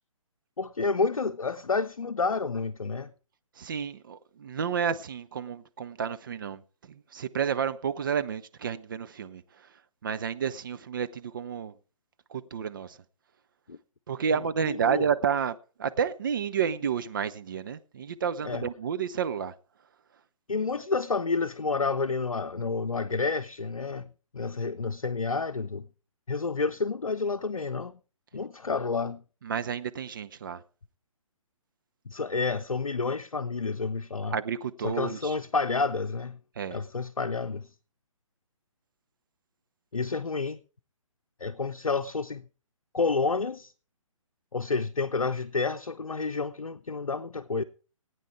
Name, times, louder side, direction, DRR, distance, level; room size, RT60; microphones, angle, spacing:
voice 1, 0.6-3.1 13.7-13.8 14.3-15.1 18.4-18.7 20.5-25.9 26.3-27.9 28.3-29.2 32.1-34.4 34.8-36.4 36.7-37.7 39.9-40.6 41.4-42.4 42.9-43.7 44.5-47.6, left 4 dB, 70° left, 0.7 m, -29 dB
voice 2, 3.6-6.6 7.1-9.4 10.0-11.7 12.3-13.0 14.1-19.5 29.4-30.6 34.3-35.3 36.6-36.8, right 7 dB, 35° right, 0.7 m, -30 dB
17.5 x 9.3 x 4.6 m
figure-of-eight pair, 135°, 18 cm